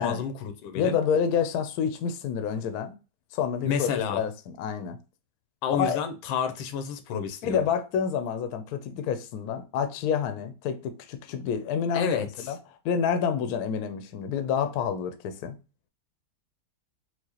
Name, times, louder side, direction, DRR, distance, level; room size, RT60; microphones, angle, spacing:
voice 1, 0.0-1.0 3.6-4.2 5.6-7.7 11.9-12.3, left 7 dB, 90° left, 1.4 m, -29 dB
voice 2, 0.7-2.9 3.3-5.0 5.7-6.0 7.4-12.2 12.4-12.6 12.8-15.6, left 7 dB, 70° left, 0.9 m, -28 dB
4.6 x 2.0 x 2.8 m
omnidirectional pair, 2.1 m